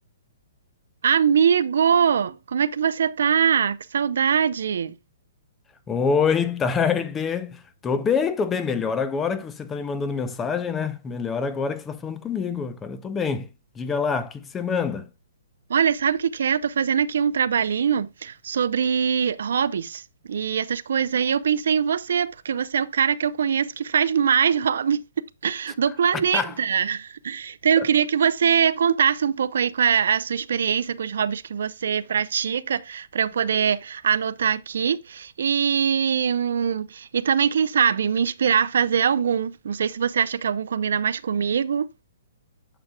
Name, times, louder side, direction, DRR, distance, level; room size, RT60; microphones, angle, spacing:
voice 1, 1.0-5.0 15.7-25.0 25.4-41.9, right 7 dB, 70° right, 0.5 m, -22 dB
voice 2, 5.9-15.1 26.1-26.6 27.8-27.9, left 6 dB, 15° left, 0.6 m, -26 dB
8.9 x 6.3 x 2.2 m
hypercardioid pair, 155°, 0 cm